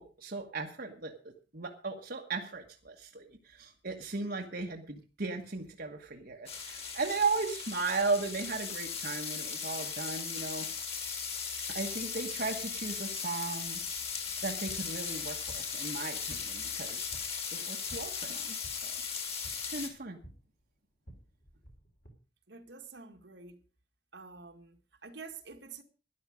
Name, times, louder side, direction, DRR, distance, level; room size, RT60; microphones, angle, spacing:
voice 1, 0.0-10.9 11.7-13.8 14.4-17.2 17.5-18.9 19.7-20.2, right 3 dB, 55° right, 1.4 m, -36 dB
sound 1, 6.5-19.9, left 6 dB, 35° left, 2.9 m, -38 dB
sound 2, 14.7-22.1, right 1 dB, 50° left, 3.7 m, -55 dB
voice 2, 22.5-23.6 24.1-25.8, right 4 dB, 70° right, 1.9 m, -48 dB
13.0 x 11.0 x 5.1 m
head